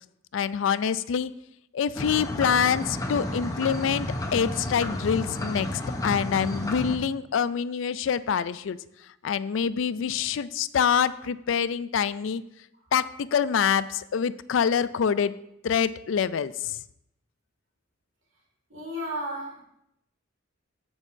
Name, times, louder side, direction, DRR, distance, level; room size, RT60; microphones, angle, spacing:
voice 1, 0.3-1.3 1.7-8.8 9.2-12.4 12.9-15.3 15.6-16.8, left 7 dB, 75° left, 16 dB, 0.4 m, -26 dB
sound 1, 2.0-7.0, left 1 dB, 15° left, 0.8 m, -32 dB
voice 2, 18.7-19.6, equal, 75° right, -2 dB, 2.6 m, -33 dB
14.5 x 6.3 x 2.7 m, 0.80 s
head